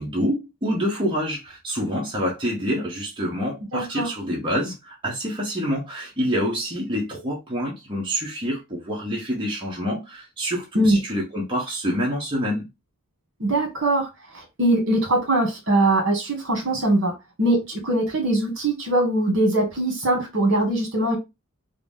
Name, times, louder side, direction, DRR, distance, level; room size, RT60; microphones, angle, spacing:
voice 1, 0.0-12.7, equal, 20° right, 0.9 m, -27 dB
voice 2, 3.7-4.1 10.7-11.0 13.4-14.1 14.3-21.2, right 1 dB, 60° right, 1.5 m, -22 dB
3.7 x 2.0 x 3.5 m
head